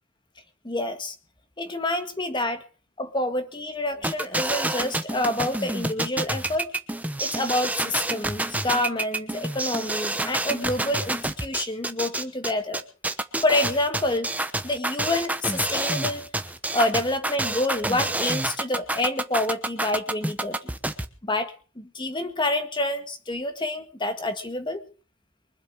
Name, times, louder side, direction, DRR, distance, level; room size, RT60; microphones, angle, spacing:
voice 1, 0.6-1.2 1.6-2.6 3.0-6.7 7.2-12.9 13.4-14.3 14.6-16.2 16.7-20.8 21.2-24.8, left 1 dB, 25° left, 7 dB, 1.9 m, -27 dB
sound 1, 4.0-21.1, right 2 dB, 10° right, 1.0 m, -28 dB
24.0 x 8.1 x 6.4 m, 0.39 s
head